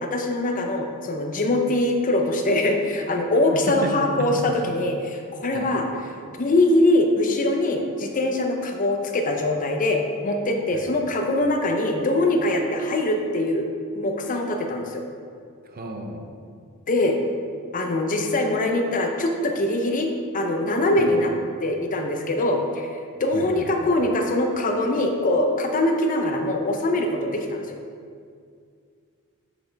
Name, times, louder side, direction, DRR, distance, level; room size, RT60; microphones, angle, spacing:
voice 1, 0.0-5.8 6.4-13.7 13.9-15.0 16.9-17.2 17.7-21.3 21.6-27.8, left 1 dB, 35° left, 3 dB, 0.6 m, -23 dB
voice 2, 3.5-4.5 5.5-5.7 10.7-10.9 15.6-16.3 21.0-21.1 23.3-23.9, right 1 dB, 40° right, 3 dB, 0.7 m, -33 dB
7.9 x 5.9 x 3.4 m, 2.2 s
head